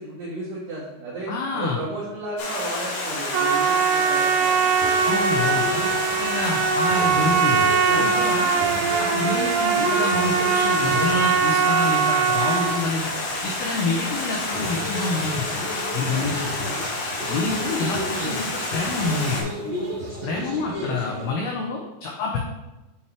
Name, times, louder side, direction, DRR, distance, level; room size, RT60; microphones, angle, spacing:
voice 1, 0.0-4.9 16.5-16.7 17.2-17.4, right 2 dB, 70° right, -6 dB, 2.1 m, -34 dB
voice 2, 1.3-1.8 5.0-8.5 9.0-13.1 13.4-15.7 15.9-16.7 17.3-19.5 20.2-22.4, left 3 dB, 90° left, 0 dB, 2.2 m, -28 dB
Stream, 2.4-19.4, left 2 dB, 60° left, 2.6 m, -29 dB
Trumpet, 3.3-12.8, right 6 dB, 90° right, 3.2 m, -21 dB
sound 1, 4.8-21.3, right 1 dB, 25° right, 1.4 m, -34 dB
8.4 x 5.4 x 3.3 m, 1.0 s
omnidirectional pair, 5.5 m